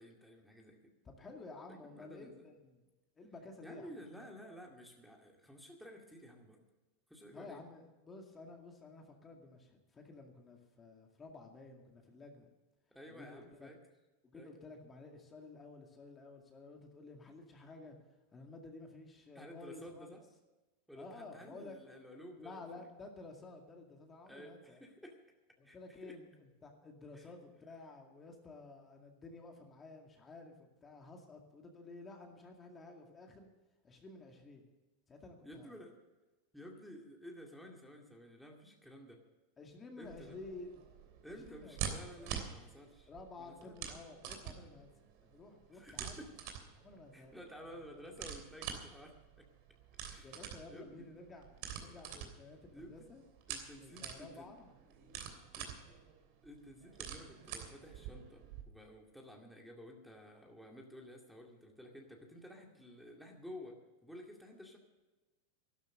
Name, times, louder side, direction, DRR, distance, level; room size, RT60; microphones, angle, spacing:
voice 1, 0.0-0.9 1.7-2.5 3.6-6.6 7.1-7.6 12.9-13.8 14.3-14.5 19.3-20.2 20.9-22.9 24.3-25.2 25.6-26.2 27.1-27.3 35.4-35.9 36.5-39.2 40.0-40.4 41.2-43.1 43.4-43.8 45.7-46.3 47.1-49.5 50.1-51.1 52.7-53.1 53.5-54.5 55.6-55.7 56.4-63.8 64.0-64.8, equal, ahead, 0 dB, 2.2 m, -53 dB
voice 2, 1.0-2.8 3.2-3.9 7.3-12.5 13.1-13.7 14.2-18.0 18.3-20.1 21.0-21.8 22.4-24.8 25.6-33.5 33.8-34.7 35.1-35.8 39.6-40.7 41.3-42.3 43.1-44.9 45.2-46.2 46.8-47.3 50.2-51.5 51.8-53.2 53.8-54.7, left 3 dB, 20° left, 2 dB, 2.1 m, -52 dB
sound 1, 40.0-58.6, right 8 dB, 60° right, 3.1 m, -47 dB
12.5 x 12.0 x 6.6 m, 1.1 s
supercardioid pair, 130°, 0 cm